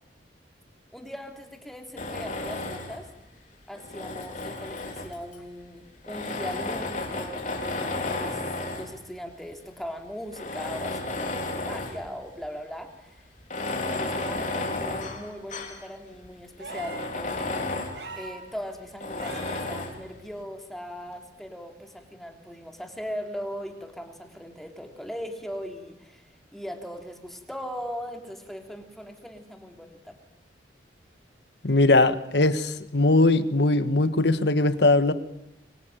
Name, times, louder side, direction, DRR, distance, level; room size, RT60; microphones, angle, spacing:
voice 1, 0.9-3.1 3.7-8.4 8.7-13.3 13.5-17.3 18.1-30.2, equal, ahead, 3 dB, 3.3 m, -39 dB
Tools, 2.0-3.1 3.7-5.4 6.0-9.0 9.7-9.8 10.3-12.1 12.4-12.5 13.4-15.8 16.2-16.3 16.7-18.0 19.0-20.0, left 2 dB, 45° left, 4.0 m, -32 dB
sound 1, 16.6-17.1 17.9-18.4 19.2-19.7 21.1-21.2, right 3 dB, 85° right, 5.4 m, -40 dB
voice 2, 31.6-35.1, left 2 dB, 70° left, 11 dB, 1.6 m, -20 dB
25.5 x 24.5 x 9.2 m, 0.88 s
head